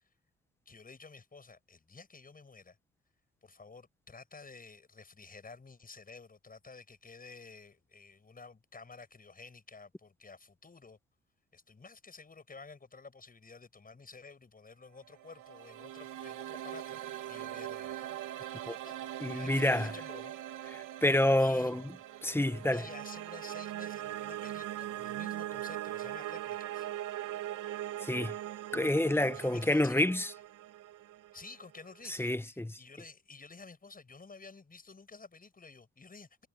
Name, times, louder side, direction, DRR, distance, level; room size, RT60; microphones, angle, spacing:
voice 1, 0.7-2.8 3.4-11.0 11.5-17.0 17.3-18.0 18.7-19.0 19.2-20.3 21.4-21.7 22.7-26.9 29.3-30.1 31.3-36.5, left 4 dB, 30° left, 7.6 m, -51 dB
sound 1, 15.0-32.1, right 13 dB, 85° right, 3.3 m, -41 dB
voice 2, 19.2-19.9 20.7-21.8 22.2-22.8 28.0-28.3 28.7-30.3 32.1-32.8, left 1 dB, 10° left, 1.3 m, -28 dB
cardioid pair, 90°, 30 cm